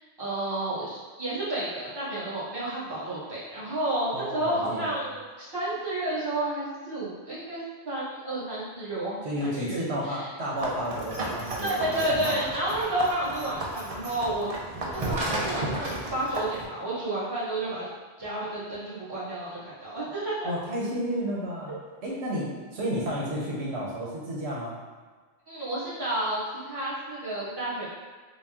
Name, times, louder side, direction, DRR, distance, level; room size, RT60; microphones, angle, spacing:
voice 1, 0.2-10.3 11.6-14.5 14.9-17.9 18.2-20.5 21.7-21.8 25.5-27.9, right 1 dB, 25° right, -11 dB, 1.3 m, -31 dB
voice 2, 4.1-4.9 9.2-12.4 20.4-21.7 22.0-24.8, equal, 90° right, -5 dB, 1.1 m, -32 dB
sound 1, 10.6-16.6, right 1 dB, 45° right, 0.6 m, -33 dB
3.9 x 2.2 x 3.5 m, 1.4 s
omnidirectional pair, 1.1 m